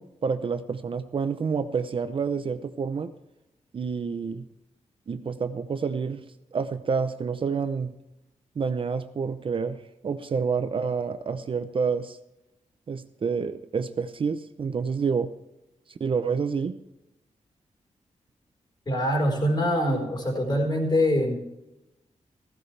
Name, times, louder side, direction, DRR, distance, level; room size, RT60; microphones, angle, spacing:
voice 1, 0.0-3.1 3.7-4.5 5.1-6.2 6.5-7.9 8.6-12.2 12.9-15.3 15.9-16.8, right 5 dB, 45° right, 10 dB, 0.7 m, -28 dB
voice 2, 18.9-21.4, equal, 35° left, 1 dB, 4.4 m, -24 dB
16.0 x 15.5 x 3.3 m, 0.94 s
wide cardioid pair, 165°, 12 cm